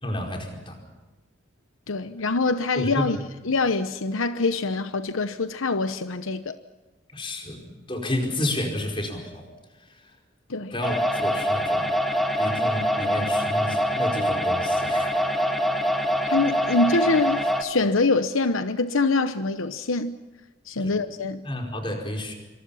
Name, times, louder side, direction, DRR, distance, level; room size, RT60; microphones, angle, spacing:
voice 1, 0.0-0.8 2.7-3.1 7.1-7.6 7.9-9.5 10.7-11.9 12.4-15.2 20.8-21.0 21.4-22.3, left 1 dB, 25° left, 4.9 m, -30 dB
voice 2, 1.9-3.2 3.5-6.6 10.5-10.7 16.2-20.2 20.7-21.4, left 3 dB, 80° left, 1.0 m, -24 dB
sound 1, 10.8-17.6, equal, ahead, 1.7 m, -24 dB
27.0 x 26.0 x 5.7 m
head